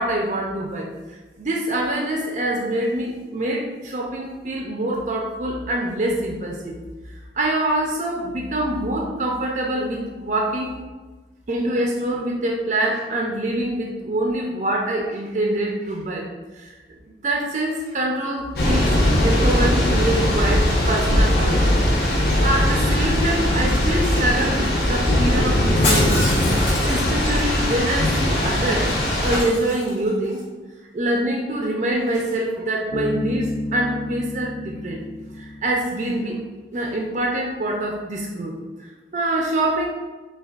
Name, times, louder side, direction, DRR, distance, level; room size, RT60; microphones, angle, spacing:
voice 1, 0.0-6.8 7.1-10.8 11.5-16.3 16.5-16.8 17.2-19.0 19.2-21.7 22.1-26.3 26.8-28.9 29.2-30.4 30.9-35.0 35.3-36.4 36.7-39.9, right 1 dB, 40° right, -1 dB, 0.4 m, -25 dB
Thunder / Rain, 18.6-29.4, left 1 dB, 65° left, 0.9 m, -20 dB
Shatter, 25.8-27.4 29.2-30.3 32.1-32.4, left 1 dB, 90° left, 1.1 m, -27 dB
Bass guitar, 32.9-36.4, left 1 dB, 25° left, 0.4 m, -31 dB
6.6 x 2.3 x 2.4 m, 1.3 s
head